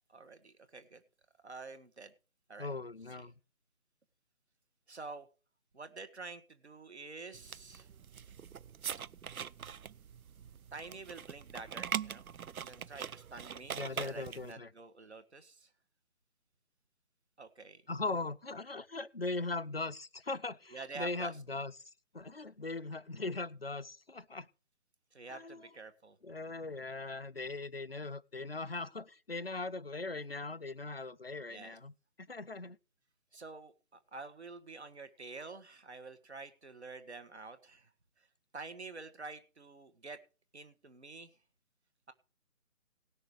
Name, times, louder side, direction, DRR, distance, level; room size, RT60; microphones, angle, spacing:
voice 1, 0.1-1.0 1.4-2.1 2.5-2.7 3.2-3.3 4.9-5.3 5.7-7.9 10.7-12.3 12.5-15.7 17.4-17.8 20.7-21.3 25.1-26.2 31.5-31.8 33.3-37.9 38.2-38.3 38.5-40.2 40.5-41.3, right 3 dB, 50° right, 10 dB, 1.7 m, -48 dB
voice 2, 2.6-3.3 13.7-14.7 17.9-21.7 22.1-24.5 25.3-25.6 26.2-32.8, left 3 dB, 45° left, 13 dB, 0.6 m, -40 dB
sound 1, 7.3-14.5, right 8 dB, 70° right, 0.6 m, -42 dB
18.0 x 6.5 x 4.7 m, 0.34 s
figure-of-eight pair, 170°, 44 cm